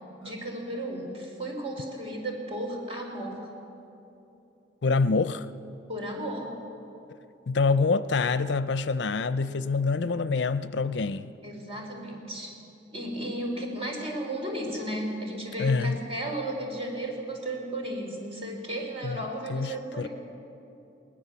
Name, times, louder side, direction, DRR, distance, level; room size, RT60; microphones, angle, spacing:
voice 1, 0.2-3.4 5.9-6.6 11.4-12.5 12.9-20.1, right 1 dB, 35° right, 3.9 m, -34 dB
voice 2, 4.8-5.5 7.5-11.3 15.6-16.0 19.0-19.2 19.5-20.1, left 4 dB, 70° left, 0.5 m, -26 dB
20.0 x 19.0 x 7.0 m
head